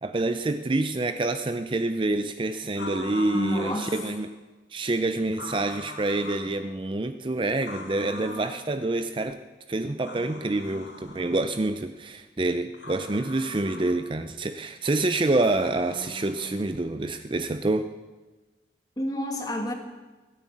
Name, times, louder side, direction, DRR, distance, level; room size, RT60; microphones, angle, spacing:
voice 1, 0.0-4.3 4.7-9.4 9.7-17.9, right 2 dB, 30° right, 9 dB, 0.5 m, -27 dB
sound 1, 2.7-4.2 5.3-6.5 7.6-8.6 10.0-11.4 12.7-14.0 15.3-16.7, left 2 dB, 85° left, 2.6 m, -40 dB
voice 2, 3.3-3.9 19.0-19.7, equal, 20° left, 3 dB, 1.8 m, -29 dB
15.5 x 9.8 x 8.5 m, 1.2 s
head